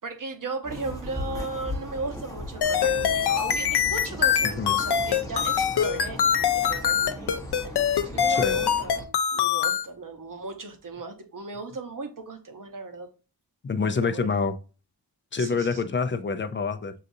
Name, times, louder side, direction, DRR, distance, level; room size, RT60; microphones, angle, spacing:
voice 1, 0.0-6.2 6.5-7.4 8.0-13.1 13.9-14.3 15.4-15.9, right 3 dB, 55° right, 0.8 m, -36 dB
sound 1, 0.6-9.1, left 1 dB, 10° left, 0.8 m, -38 dB
sound 2, 2.6-9.9, left 8 dB, 80° left, 0.5 m, -23 dB
voice 2, 4.4-4.7 8.3-8.6 13.6-14.6 15.3-16.9, left 4 dB, 30° left, 0.4 m, -27 dB
6.4 x 2.5 x 2.6 m
wide cardioid pair, 85°, 39 cm